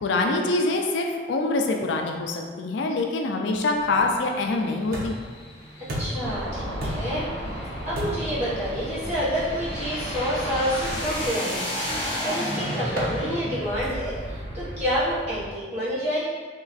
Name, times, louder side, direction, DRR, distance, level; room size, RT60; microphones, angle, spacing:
voice 1, 0.0-5.1, left 2 dB, 70° left, 2 dB, 0.4 m, -25 dB
sound 1, 3.7-15.4, equal, 30° left, 0.8 m, -34 dB
sound 2, 4.9-5.4 5.9-6.3 6.8-7.3 8.0-8.4 9.1-9.3 10.8-11.2 11.9-12.3 13.0-13.2 13.8-14.2, equal, 50° right, 0.7 m, -32 dB
voice 2, 6.0-7.2 7.8-16.2, equal, 35° right, -11 dB, 1.5 m, -28 dB
sound 3, 6.2-11.3, equal, ahead, 1.5 m, -34 dB
3.7 x 3.0 x 2.5 m, 1.5 s
head